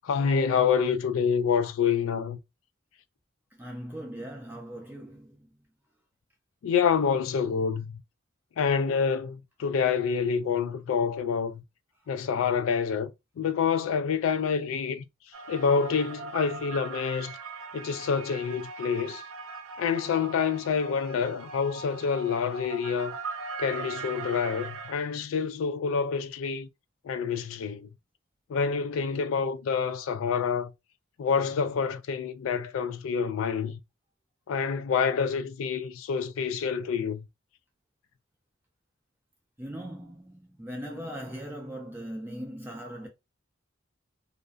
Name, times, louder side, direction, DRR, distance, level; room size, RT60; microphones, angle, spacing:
voice 1, 0.0-2.4 6.6-8.0 8.6-11.6 12.1-13.1 13.4-15.0 15.5-17.4 17.7-19.2 19.8-23.1 23.6-26.7 27.0-27.9 28.5-30.7 31.2-33.8 34.5-37.2, left 6 dB, 80° left, 0.3 m, -27 dB
voice 2, 3.6-5.5 39.6-43.1, equal, 10° right, 0.4 m, -39 dB
sound 1, 15.3-24.9, right 4 dB, 75° right, 0.4 m, -40 dB
2.5 x 2.1 x 2.4 m
head